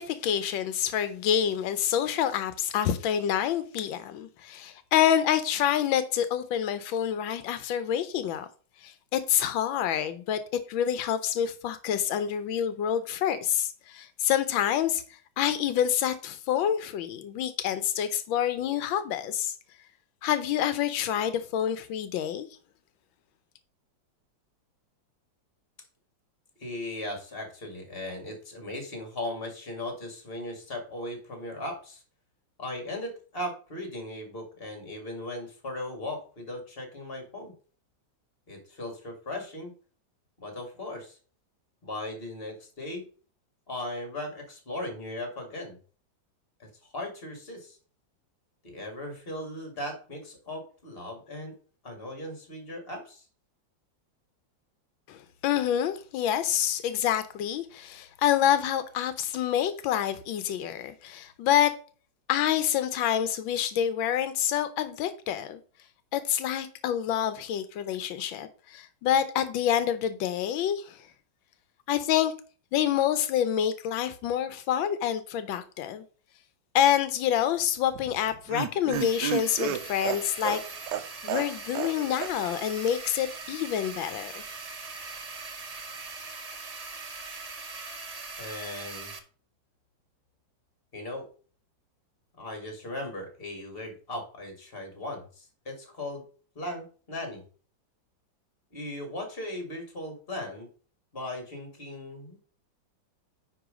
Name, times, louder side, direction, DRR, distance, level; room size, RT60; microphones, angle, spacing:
voice 1, 0.0-8.5 8.8-10.4 10.7-19.6 20.2-22.5 55.1-61.7 62.3-65.6 66.1-71.1 71.9-72.3 72.7-76.0 76.7-80.6 81.2-84.4, left 10 dB, 85° left, 1.4 m, -27 dB
voice 2, 26.6-32.0 32.6-37.5 38.5-39.7 40.4-41.2 41.8-43.0 43.7-45.8 46.6-47.8 48.6-51.5 51.8-53.3 88.4-89.1 90.9-91.3 92.4-96.2 96.6-97.4 98.7-100.7 101.1-102.4, left 1 dB, 30° left, 2.2 m, -38 dB
Laughter, 77.9-81.9 82.2-82.3 82.6-82.7, right 10 dB, 70° right, 1.2 m, -32 dB
sound 1, 78.9-89.2, right 4 dB, 90° right, 0.3 m, -41 dB
9.5 x 3.7 x 5.0 m
omnidirectional pair, 2.1 m